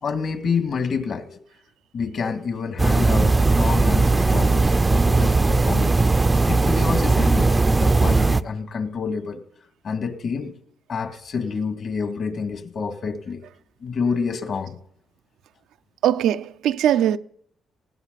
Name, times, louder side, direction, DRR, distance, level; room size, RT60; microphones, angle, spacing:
voice 1, 0.0-1.4 1.9-5.9 6.5-9.4 9.8-10.5 10.9-13.4 13.8-14.8, left 5 dB, 55° left, 2.2 m, -28 dB
sound 1, 2.8-8.4, right 3 dB, 20° right, 0.5 m, -18 dB
voice 2, 16.0-17.2, right 11 dB, 80° right, 0.6 m, -20 dB
19.5 x 17.0 x 4.1 m
cardioid pair, 90°, 0 cm